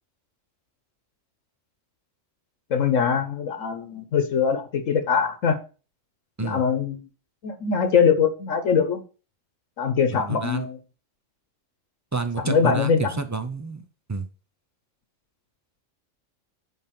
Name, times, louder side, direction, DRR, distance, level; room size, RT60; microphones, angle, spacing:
voice 1, 2.7-5.6 6.4-7.0 7.4-9.0 9.8-10.8 12.4-13.1, left 6 dB, 85° left, 8 dB, 1.4 m, -22 dB
voice 2, 10.1-10.7 12.1-14.3, right 4 dB, 20° right, 9 dB, 0.5 m, -29 dB
9.5 x 3.6 x 5.9 m, 0.35 s
omnidirectional pair, 1.3 m